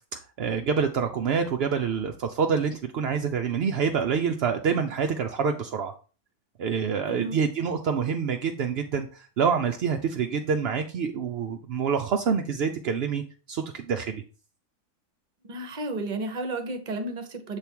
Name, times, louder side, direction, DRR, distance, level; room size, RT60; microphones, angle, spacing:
voice 1, 0.1-5.9 6.6-13.2 13.5-14.2, right 6 dB, 65° right, 4 dB, 0.6 m, -27 dB
voice 2, 7.1-7.4 15.4-17.6, right 2 dB, 35° right, 7 dB, 0.8 m, -32 dB
7.5 x 3.5 x 4.5 m, 0.36 s
omnidirectional pair, 1.6 m